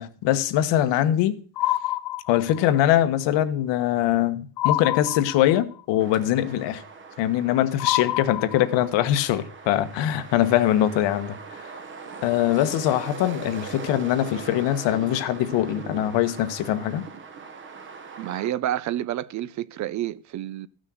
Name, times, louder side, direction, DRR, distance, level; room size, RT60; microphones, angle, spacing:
voice 1, 0.0-1.3 2.3-6.8 7.2-11.4 12.2-17.0, left 12 dB, 75° left, 1.2 m, -22 dB
sound 1, 1.6-2.8 4.6-5.8 7.8-9.0, left 16 dB, 55° left, 0.6 m, -27 dB
sound 2, 6.0-18.5, right 5 dB, 25° right, 1.0 m, -40 dB
voice 2, 18.2-20.7, right 12 dB, 45° right, 0.4 m, -29 dB
13.5 x 6.4 x 6.2 m
cardioid pair, 175°, 43 cm